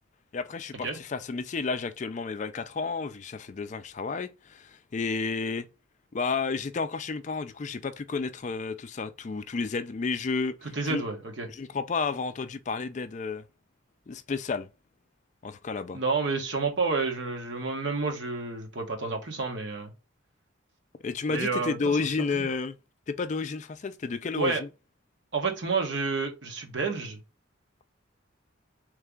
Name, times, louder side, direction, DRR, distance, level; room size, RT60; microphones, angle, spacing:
voice 1, 0.3-5.7 6.1-10.6 10.8-11.0 11.5-13.4 14.1-14.7 15.4-16.0 21.0-22.8 23.1-24.7, left 4 dB, 35° left, 0.4 m, -31 dB
voice 2, 10.7-11.5 15.9-19.9 21.3-21.8 22.3-22.5 24.3-24.6 25.3-27.2, right 4 dB, 60° right, 1.2 m, -29 dB
3.9 x 3.3 x 3.4 m
head